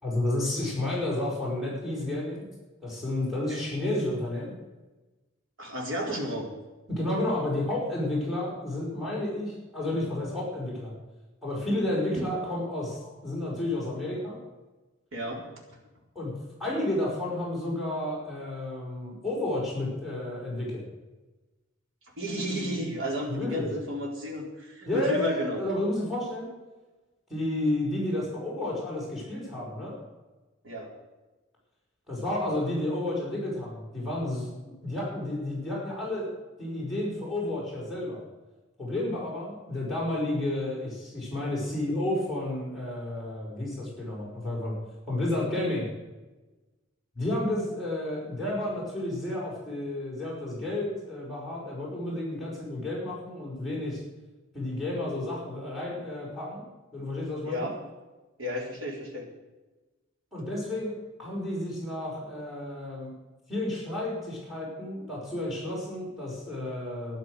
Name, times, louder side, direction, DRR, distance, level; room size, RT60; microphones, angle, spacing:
voice 1, 0.0-2.5 2.8-4.5 6.9-10.9 11.4-14.4 16.1-16.3 16.6-20.8 23.3-23.7 24.9-26.5 27.3-30.0 32.1-34.5 34.8-36.3 36.6-38.2 38.8-44.8 45.1-45.9 47.2-54.0 54.5-56.6 56.9-57.7 60.3-60.9 61.2-63.1 63.5-67.2, left 1 dB, ahead, -6 dB, 5.9 m, -31 dB
voice 2, 5.6-6.5 12.2-12.4 15.1-15.4 22.2-25.6 30.6-30.9 57.5-57.8 58.4-59.3, equal, 80° right, -1 dB, 4.1 m, -32 dB
12.5 x 11.5 x 6.6 m, 1.2 s
head